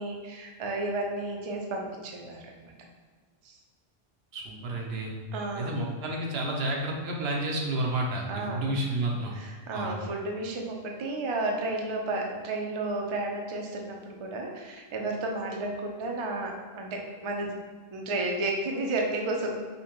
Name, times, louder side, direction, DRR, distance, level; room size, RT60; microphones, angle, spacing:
voice 1, 0.0-2.7 3.4-3.5 5.3-5.7 8.3-9.0 9.3-17.5 17.9-19.6, right 2 dB, 45° right, 1 dB, 0.4 m, -32 dB
voice 2, 4.3-5.1 5.6-9.3 9.7-10.0, right 1 dB, 80° right, 0 dB, 0.9 m, -30 dB
5.3 x 2.2 x 2.9 m, 1.5 s
omnidirectional pair, 1.0 m